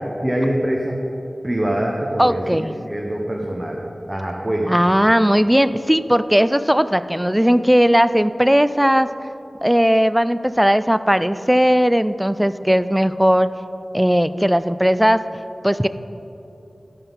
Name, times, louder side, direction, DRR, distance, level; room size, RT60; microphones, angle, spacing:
voice 1, 0.2-1.0 1.4-4.8, right 1 dB, 25° right, -1 dB, 1.1 m, -24 dB
voice 2, 2.2-2.7 4.7-9.1 9.6-13.5 13.9-15.2 15.6-15.9, equal, 5° right, 13 dB, 0.4 m, -17 dB
13.5 x 5.6 x 5.5 m, 2.9 s
wide cardioid pair, 45°, 0 cm